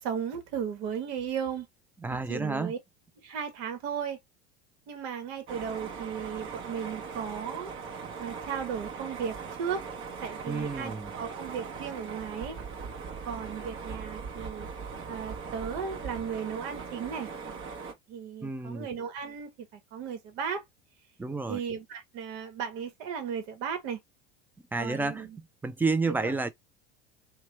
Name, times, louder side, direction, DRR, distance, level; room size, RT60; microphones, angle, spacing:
voice 1, 0.0-1.7 2.3-2.8 3.2-4.2 4.9-7.7 8.2-9.8 10.2-12.6 13.3-14.7 15.1-17.3 18.1-20.6 21.5-24.0 24.8-25.4 26.1-26.3, right 7 dB, 65° right, 1.2 m, -35 dB
voice 2, 2.0-2.7 10.5-11.1 18.4-18.9 21.2-21.6 24.7-26.5, right 3 dB, 5° right, 0.4 m, -30 dB
sound 1, 5.5-17.9, right 5 dB, 40° right, 1.0 m, -40 dB
3.0 x 2.3 x 3.1 m
hypercardioid pair, 80°, 33 cm